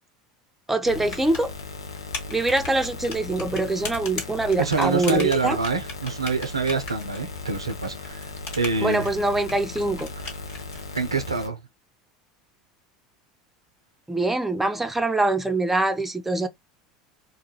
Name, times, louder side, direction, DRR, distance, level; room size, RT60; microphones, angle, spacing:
voice 1, 0.7-1.5 2.3-5.6 8.8-10.1 14.1-16.5, right 2 dB, 10° right, 0.5 m, -24 dB
sound 1, 0.8-11.5, left 3 dB, 85° left, 0.4 m, -37 dB
sound 2, 1.0-11.0, left 3 dB, 55° left, 1.4 m, -38 dB
voice 2, 4.6-9.1 10.9-11.6, right 4 dB, 90° right, 0.4 m, -26 dB
2.2 x 2.1 x 2.9 m
figure-of-eight pair, 75°, 3 cm